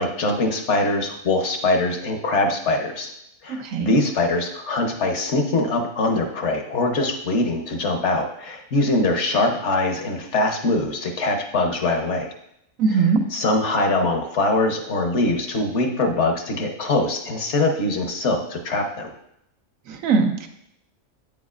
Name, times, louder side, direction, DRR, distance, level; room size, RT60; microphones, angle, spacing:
voice 1, 0.0-3.1 3.4-12.3 12.9-19.1, left 2 dB, 60° left, 4 dB, 1.1 m, -23 dB
voice 2, 3.6-3.9 12.8-13.2 19.9-20.5, right 5 dB, 80° right, 5 dB, 1.1 m, -20 dB
8.8 x 7.3 x 2.4 m, 0.77 s
omnidirectional pair, 1.4 m